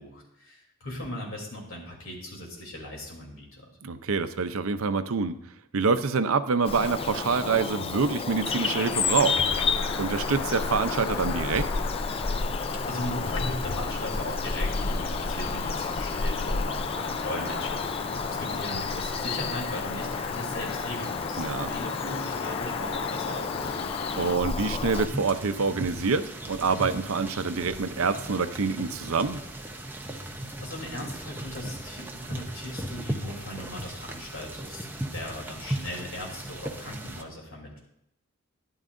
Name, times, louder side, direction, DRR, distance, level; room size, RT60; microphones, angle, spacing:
voice 1, 0.0-3.7 12.9-23.9 30.1-37.8, left 1 dB, 65° left, -2 dB, 3.1 m, -38 dB
voice 2, 3.8-5.4 5.7-9.4 10.0-11.7 21.4-21.7 24.1-29.4, right 4 dB, 70° right, 11 dB, 0.6 m, -26 dB
Bird vocalization bird call bird song, 6.6-25.1, left 4 dB, 25° left, 0.4 m, -30 dB
sound 1, 8.4-24.4, left 6 dB, 85° left, 0.5 m, -38 dB
sound 2, 24.9-37.2, right 1 dB, 10° right, 0.7 m, -37 dB
12.5 x 11.0 x 2.6 m, 0.82 s
head